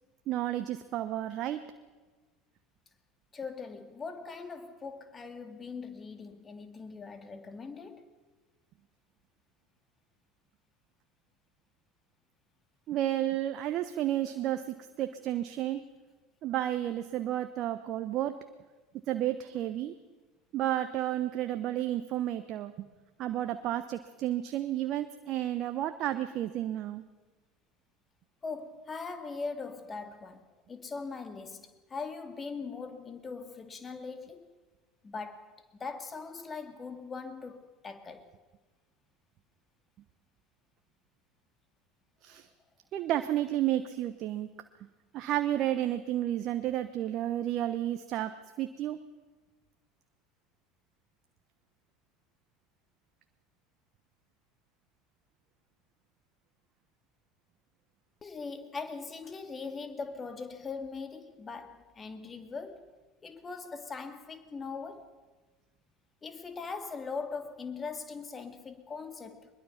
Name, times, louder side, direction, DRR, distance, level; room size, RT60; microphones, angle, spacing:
voice 1, 0.3-1.6 12.9-15.8 16.4-18.3 19.1-19.9 20.5-22.9 23.2-27.0 42.2-42.5 42.9-44.5 45.1-49.0, right 12 dB, 50° right, 1.0 m, -31 dB
voice 2, 3.3-8.1 28.4-34.5 35.0-38.3 58.2-62.9 63.2-65.1 66.2-69.5, left 4 dB, 25° left, 2.3 m, -41 dB
22.5 x 21.5 x 5.8 m
figure-of-eight pair, 70°, 0 cm